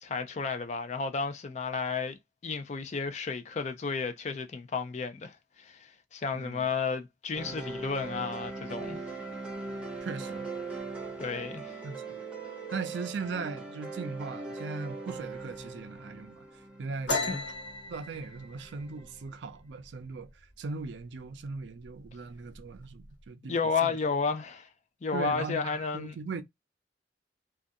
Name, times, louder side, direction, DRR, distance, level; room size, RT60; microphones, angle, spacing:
voice 1, 0.0-2.2 2.4-9.0 11.2-11.8 17.3-17.4 23.5-24.7 25.0-26.1, left 5 dB, 40° left, 0.4 m, -32 dB
voice 2, 6.3-6.7 10.0-10.5 11.8-12.2 12.7-17.4 17.9-23.5 23.8-24.0 25.1-26.4, right 4 dB, 75° right, 0.4 m, -39 dB
sound 1, 7.3-19.4, right 3 dB, 5° right, 0.7 m, -41 dB
sound 2, 17.1-20.5 20.8-21.2 21.5-22.1 22.3-23.1, left 2 dB, 75° left, 1.1 m, -36 dB
2.4 x 2.3 x 2.5 m
head